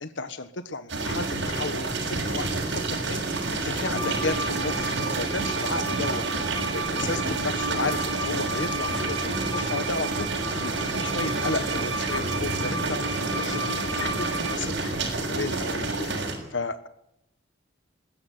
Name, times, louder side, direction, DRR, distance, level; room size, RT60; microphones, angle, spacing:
voice 1, 0.0-6.2 6.7-13.0 13.4-16.1 16.5-16.9, left 3 dB, 70° left, 11 dB, 1.4 m, -33 dB
sound 1, 0.9-16.3, right 3 dB, 70° right, 6.8 m, -29 dB
sound 2, 3.9-14.6, right 2 dB, 85° right, 2.1 m, -33 dB
21.0 x 16.0 x 9.5 m, 0.81 s
head